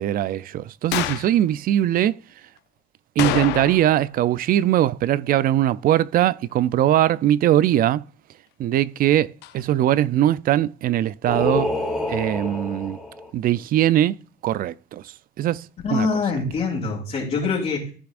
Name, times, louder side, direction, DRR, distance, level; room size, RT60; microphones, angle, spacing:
voice 1, 0.0-2.2 3.2-8.0 8.6-11.7 12.1-13.0 13.3-14.2 14.4-15.7 15.9-16.1, right 12 dB, 55° right, 0.4 m, -21 dB
sound 1, 0.9-1.4 3.2-4.0 4.3-4.4 9.4-9.5, left 14 dB, 90° left, 0.6 m, -27 dB
Singing, 11.3-13.3, left 1 dB, 5° right, 2.5 m, -27 dB
voice 2, 15.8-17.9, left 4 dB, 45° left, 2.9 m, -24 dB
15.0 x 5.9 x 2.5 m
cardioid pair, 110°, 17 cm